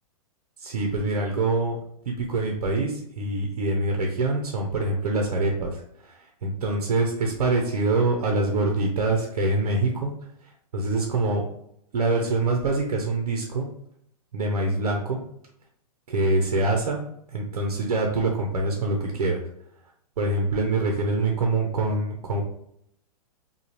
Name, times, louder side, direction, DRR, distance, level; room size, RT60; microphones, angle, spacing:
voice 1, 0.6-1.8 2.1-10.1 10.4-11.4 11.9-13.7 14.3-15.2 16.1-17.0 17.3-19.4 20.2-22.4, right 2 dB, 80° right, 2 dB, 0.9 m, -25 dB
5.5 x 2.4 x 3.2 m, 0.72 s
hypercardioid pair, 145°, 19 cm